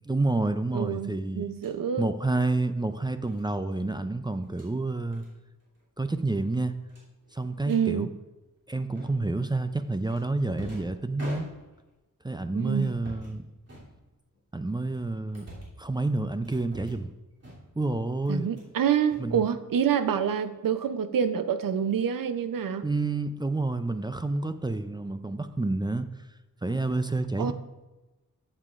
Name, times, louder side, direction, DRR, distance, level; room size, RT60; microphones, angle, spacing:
voice 1, 0.1-1.5 2.0-5.3 6.0-6.7 7.3-8.1 8.7-11.5 12.2-13.5 14.5-15.5 15.8-17.1 17.8-18.5 19.2-19.5 22.8-26.1 26.6-27.5, right 2 dB, 15° right, 9 dB, 0.3 m, -29 dB
voice 2, 0.7-2.1 7.7-8.1 12.5-12.9 18.3-22.8 27.4-27.5, right 8 dB, 80° right, 11 dB, 0.6 m, -27 dB
sound 1, 1.5-1.8 3.3-3.5 4.4-4.7 5.1-5.3 5.6-5.8 6.1-6.2 6.9-7.8 9.0-9.4 10.1-11.9 12.7-13.4 13.7-14.4 14.9-15.8 16.4-17.1 17.4-17.9 18.2-18.7 19.0-19.9, equal, 50° right, 2.9 m, -46 dB
13.0 x 7.5 x 2.5 m, 1.1 s
wide cardioid pair, 145°, 33 cm